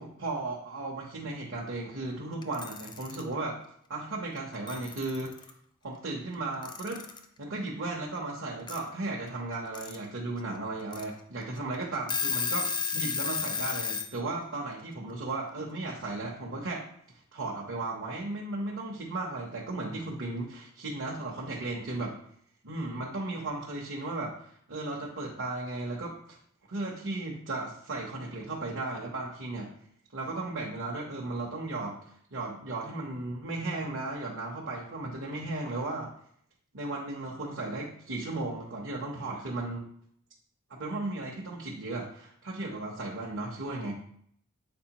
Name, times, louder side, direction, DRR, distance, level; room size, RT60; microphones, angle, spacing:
voice 1, 0.0-3.6 3.9-5.3 5.8-7.1 7.4-16.8 17.3-22.2 22.6-26.4 26.7-29.7 30.1-32.0 32.3-36.1 36.7-39.9 40.7-43.9, right 2 dB, 60° right, -2 dB, 1.0 m, -35 dB
Alarm / Clock, 2.4-3.2 4.4-4.5 4.7-5.5 6.6-7.2 8.7-8.8 9.5-10.0 10.4-10.5 10.9-11.0 11.6-11.7 11.9-14.1, left 6 dB, 20° left, 0.5 m, -32 dB
7.8 x 4.3 x 3.0 m, 0.65 s
head